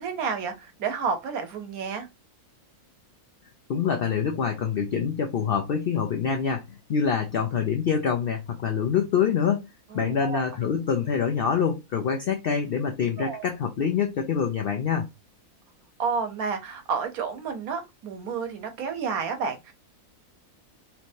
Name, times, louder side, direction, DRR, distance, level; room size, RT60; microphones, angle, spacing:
voice 1, 0.0-2.1 9.9-10.4 13.2-13.4 16.0-19.7, right 5 dB, 80° right, 1.2 m, -30 dB
voice 2, 3.7-6.6 6.9-9.7 9.9-15.1, left 7 dB, 75° left, 0.5 m, -25 dB
3.4 x 3.0 x 2.6 m
omnidirectional pair, 1.5 m